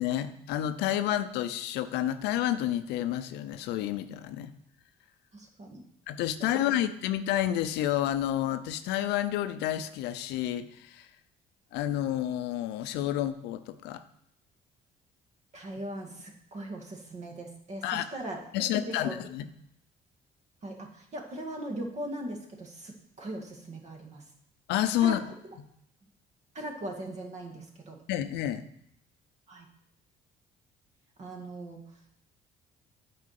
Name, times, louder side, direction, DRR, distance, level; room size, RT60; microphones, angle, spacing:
voice 1, 0.0-4.5 6.1-11.1 11.7-14.0 17.8-18.1 18.5-19.5 24.7-25.2 28.1-28.6, left 12 dB, 90° left, 11 dB, 0.6 m, -29 dB
voice 2, 5.3-5.8 15.5-18.5 18.7-19.2 20.6-24.2 25.0-25.3 26.5-28.0 29.5-29.7 31.2-31.8, right 1 dB, 40° right, 2 dB, 2.0 m, -39 dB
8.7 x 4.8 x 6.6 m, 0.73 s
cardioid pair, 110°, 17 cm